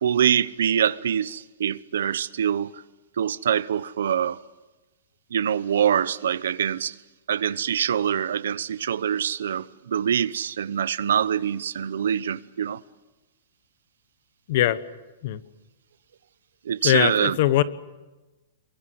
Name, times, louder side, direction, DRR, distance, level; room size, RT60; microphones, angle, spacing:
voice 1, 0.0-2.8 3.2-4.4 5.3-6.9 7.3-12.8 16.6-17.4, right 9 dB, 80° right, 0.9 m, -24 dB
voice 2, 14.5-14.8 15.2-15.4 16.8-17.6, left 13 dB, 40° left, 1.1 m, -21 dB
28.5 x 23.0 x 8.0 m
hypercardioid pair, 175°, 0 cm